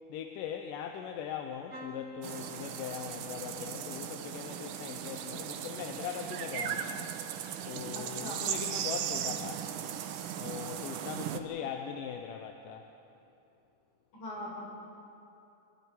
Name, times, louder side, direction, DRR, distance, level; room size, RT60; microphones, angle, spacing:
voice 1, 0.1-7.1 7.7-9.7 10.4-12.9, left 8 dB, 90° left, 4 dB, 2.5 m, -40 dB
sound 1, 1.7-9.5 10.0-10.5 11.8-12.0 12.2-12.3, left 2 dB, 35° right, 1.1 m, -53 dB
sound 2, 2.2-11.4, right 9 dB, 80° right, 2.4 m, -37 dB
voice 2, 7.9-8.4 14.1-14.6, left 1 dB, 70° left, -4 dB, 7.0 m, -41 dB
26.5 x 21.5 x 4.6 m, 2.8 s
omnidirectional pair, 3.7 m